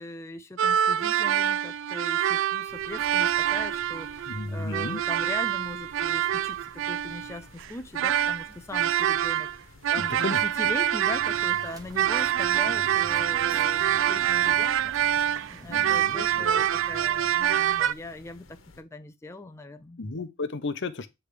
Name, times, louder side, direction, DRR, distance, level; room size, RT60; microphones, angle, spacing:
voice 1, 0.0-9.5 9.9-14.9 15.5-20.0, left 2 dB, 15° left, 0.5 m, -40 dB
sound 1, 0.6-9.6 9.8-17.9, right 10 dB, 70° right, 0.4 m, -25 dB
sound 2, 2.7-18.8, left 2 dB, 90° left, 1.2 m, -54 dB
voice 2, 4.3-5.0 10.0-10.7 15.7-16.5 20.0-21.1, left 3 dB, 60° left, 0.9 m, -34 dB
sound 3, 11.1-17.3, equal, 20° right, 1.3 m, -48 dB
8.5 x 3.3 x 4.9 m
head